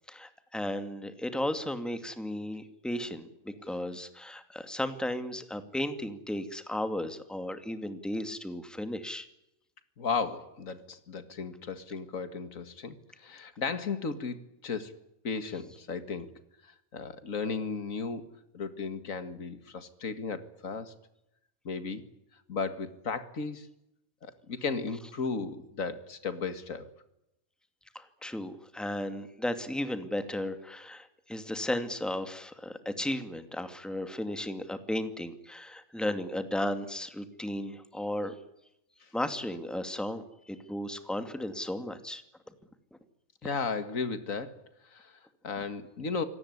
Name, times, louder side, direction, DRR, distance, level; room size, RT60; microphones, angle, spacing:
voice 1, 0.1-9.3 27.9-38.3 39.1-42.2, left 1 dB, ahead, 8 dB, 2.3 m, -35 dB
voice 2, 10.0-14.9 15.2-16.3 16.6-18.2 18.5-20.9 21.6-22.0 22.5-23.7 24.2-26.9 43.4-46.2, left 5 dB, 75° left, 10 dB, 2.3 m, -35 dB
26.0 x 18.5 x 9.8 m, 0.85 s
omnidirectional pair, 1.4 m